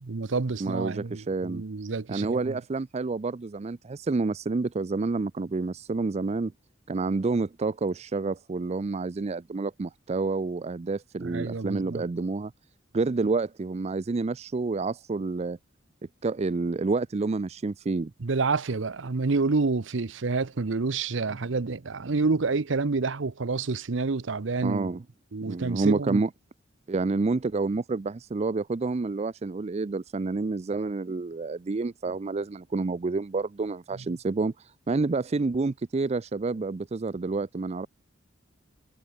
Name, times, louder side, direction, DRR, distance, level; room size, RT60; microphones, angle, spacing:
voice 1, 0.0-2.6 11.2-12.0 18.2-24.9 25.3-26.2, right 3 dB, 65° right, 0.7 m, -28 dB
voice 2, 0.6-1.6 2.1-6.5 6.9-12.5 12.9-15.6 16.2-18.1 24.6-25.0 25.5-26.3 26.9-37.9, right 3 dB, 30° right, 0.4 m, -29 dB
head